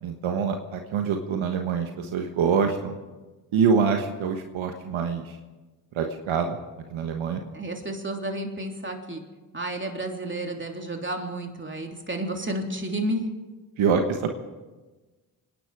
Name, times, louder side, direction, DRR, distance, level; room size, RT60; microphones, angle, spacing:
voice 1, 0.0-3.0 3.5-5.4 5.9-6.6 6.9-7.4 13.8-14.3, right 6 dB, 75° right, 5 dB, 1.4 m, -25 dB
voice 2, 7.5-9.2 9.5-13.3, right 1 dB, 25° right, 2 dB, 3.3 m, -31 dB
26.0 x 10.5 x 4.9 m, 1.2 s
supercardioid pair, 45°, 49 cm